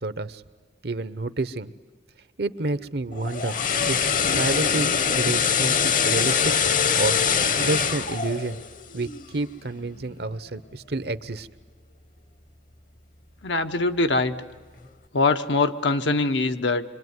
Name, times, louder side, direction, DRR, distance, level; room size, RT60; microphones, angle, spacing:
voice 1, 0.0-0.4 0.8-1.7 2.4-3.5 3.8-4.0 4.3-7.2 7.6-8.6 8.9-11.5, right 2 dB, 60° right, 14 dB, 0.9 m, -29 dB
sound 1, 3.1-9.3 9.7-9.9, left 7 dB, 45° left, 0.9 m, -23 dB
voice 2, 13.4-14.3 15.1-16.8, left 3 dB, 85° left, 7 dB, 1.1 m, -23 dB
26.0 x 24.0 x 9.5 m, 1.4 s
head